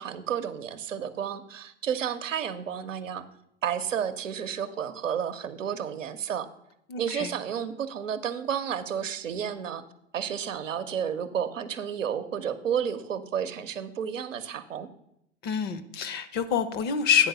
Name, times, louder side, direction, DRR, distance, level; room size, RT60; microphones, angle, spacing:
voice 1, 0.0-3.2 3.6-6.5 7.0-9.8 10.1-14.9, right 8 dB, 85° right, 8 dB, 0.8 m, -31 dB
voice 2, 6.9-7.3 15.4-17.3, left 7 dB, 25° left, 12 dB, 0.5 m, -26 dB
8.8 x 3.9 x 6.6 m, 0.77 s
hypercardioid pair, 110°, 37 cm